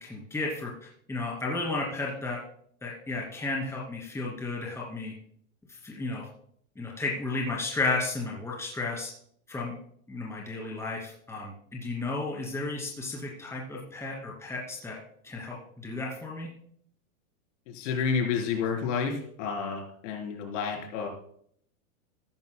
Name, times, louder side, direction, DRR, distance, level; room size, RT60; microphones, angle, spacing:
voice 1, 0.0-2.4 2.8-5.1 5.7-6.3 6.8-9.1 9.5-9.7 10.1-15.0 15.2-16.5, left 3 dB, 5° left, -2 dB, 2.5 m, -33 dB
voice 2, 17.7-21.1, left 6 dB, 55° left, 2 dB, 3.8 m, -30 dB
15.0 x 13.0 x 2.2 m, 0.66 s
supercardioid pair, 140°, 43 cm